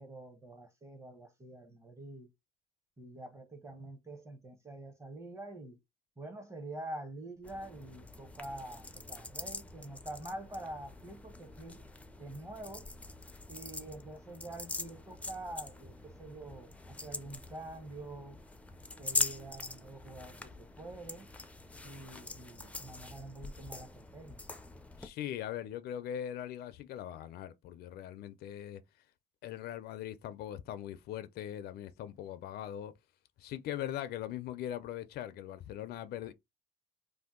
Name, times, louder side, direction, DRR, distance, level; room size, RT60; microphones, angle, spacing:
voice 1, 0.0-2.3 3.0-5.8 6.2-11.9 12.2-12.9 13.5-18.4 19.0-21.3 21.8-24.4, right 1 dB, 15° right, 0.8 m, -46 dB
sound 1, 7.4-25.1, left 2 dB, 10° left, 0.4 m, -43 dB
voice 2, 25.0-28.8 29.4-32.9 33.4-36.3, left 11 dB, 70° left, 0.4 m, -40 dB
2.7 x 2.1 x 3.6 m
cardioid pair, 110°, 17 cm